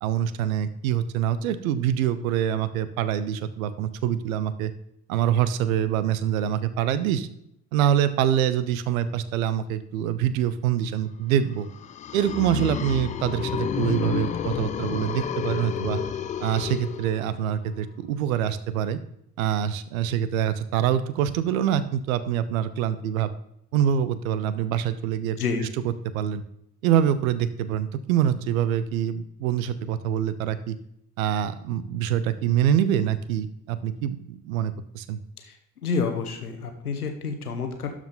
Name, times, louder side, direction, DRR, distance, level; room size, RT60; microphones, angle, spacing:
voice 1, 0.0-4.7 5.1-7.3 7.7-11.7 12.1-16.0 16.4-19.0 19.4-23.3 23.7-25.4 25.8-26.4 26.8-30.8 31.2-35.2, right 10 dB, 65° right, 14 dB, 0.7 m, -25 dB
sound 1, 11.6-17.5, left 9 dB, 20° left, 0.3 m, -30 dB
voice 2, 35.8-37.9, left 5 dB, 80° left, 5 dB, 1.0 m, -28 dB
12.0 x 4.9 x 3.8 m, 0.74 s
figure-of-eight pair, 55°, 45 cm